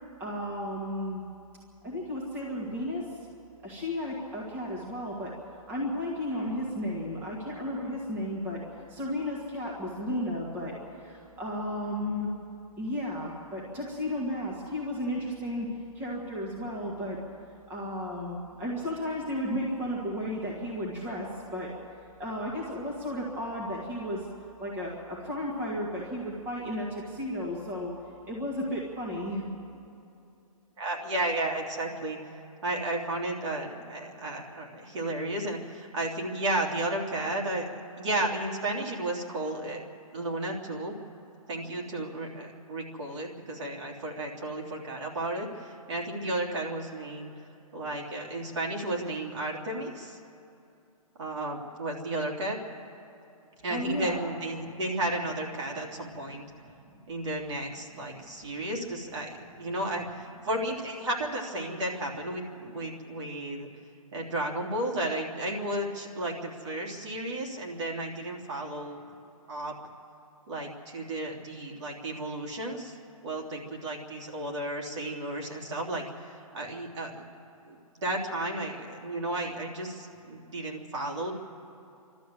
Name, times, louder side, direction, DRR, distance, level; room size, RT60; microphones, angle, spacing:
voice 1, 0.2-1.2 1.8-3.0 3.6-5.3 5.7-8.6 8.9-10.7 11.0-12.3 12.8-15.7 15.9-17.2 17.7-21.7 22.2-24.3 24.6-27.9 28.3-29.4 53.7-54.3 56.5-56.6 56.9-57.0 58.1-58.2, left 1 dB, 10° right, -3 dB, 2.2 m, -33 dB
voice 2, 30.8-37.7 38.0-39.8 40.1-40.9 41.5-47.3 47.7-50.2 51.2-52.6 53.6-56.5 57.1-59.3 59.6-63.7 64.1-69.0 69.5-69.8 70.5-73.0 73.2-77.1 77.7-81.3, right 1 dB, 50° right, 0 dB, 3.4 m, -33 dB
28.5 x 13.0 x 7.9 m, 2.7 s
hypercardioid pair, 170°, 19 cm